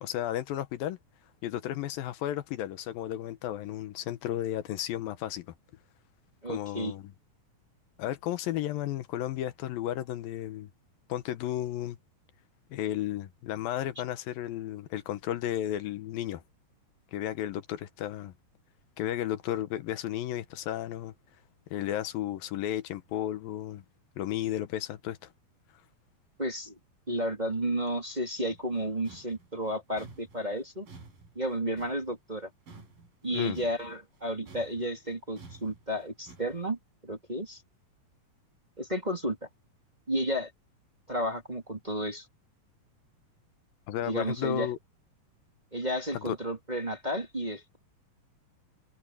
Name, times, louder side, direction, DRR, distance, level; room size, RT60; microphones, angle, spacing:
voice 1, 0.0-1.0 1.4-5.5 6.5-7.0 8.0-10.7 11.1-12.0 12.7-16.4 17.1-18.3 19.0-21.1 21.7-23.8 24.2-25.3 33.3-33.6 43.9-44.8 46.1-46.4, left 12 dB, 80° left, 2.8 m, -33 dB
voice 2, 6.4-6.9 26.4-26.8 27.1-30.9 31.3-32.5 33.2-37.6 38.8-39.5 40.1-40.5 41.1-42.3 44.0-44.7 45.7-47.8, equal, 15° right, 2.4 m, -32 dB
sound 1, 28.5-34.2 34.5-36.7, right 3 dB, 75° right, 8.2 m, -52 dB
omnidirectional pair, 4.1 m